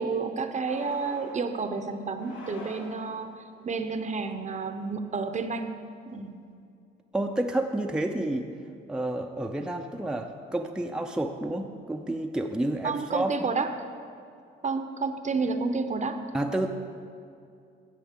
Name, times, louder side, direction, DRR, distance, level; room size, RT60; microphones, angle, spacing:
voice 1, 0.0-6.3 12.8-13.7 14.6-16.2, right 4 dB, 35° right, 8 dB, 0.7 m, -30 dB
sound 1, 0.7-1.5 2.1-3.3, left 2 dB, 80° left, 1.6 m, -45 dB
voice 2, 7.1-8.5 8.9-13.5 16.3-16.7, right 1 dB, 5° right, 3 dB, 0.5 m, -30 dB
13.0 x 7.6 x 3.7 m, 2.4 s
cardioid pair, 90°, 20 cm